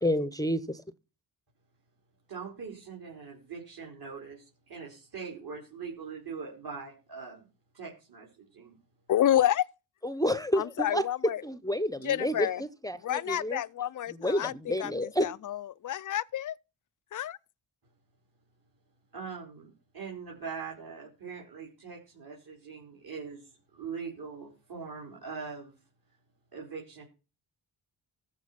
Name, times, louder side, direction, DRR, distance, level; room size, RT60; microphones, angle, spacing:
voice 1, 0.0-0.8 10.0-11.0 11.4-13.6 14.1-15.3, equal, 5° left, 0.7 m, -30 dB
voice 2, 2.3-7.4 7.7-8.7 19.1-25.7 26.5-27.1, right 5 dB, 45° right, 4.4 m, -42 dB
voice 3, 9.1-9.6 10.6-11.4 12.1-12.6 13.0-14.5 14.8-16.6 17.1-17.4, left 11 dB, 40° left, 0.5 m, -29 dB
14.5 x 5.2 x 5.9 m
cardioid pair, 65°, 50 cm